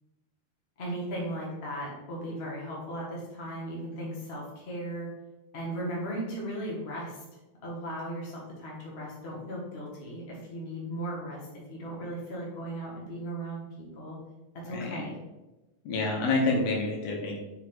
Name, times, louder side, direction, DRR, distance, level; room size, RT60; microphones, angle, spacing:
voice 1, 0.8-5.1 5.5-7.2 7.6-14.2 14.5-15.1, right 1 dB, 50° left, -4 dB, 0.7 m, -37 dB
voice 2, 14.7-15.0 15.8-17.4, left 3 dB, 80° left, -1 dB, 2.9 m, -28 dB
5.6 x 5.0 x 3.8 m, 1.0 s
omnidirectional pair, 4.2 m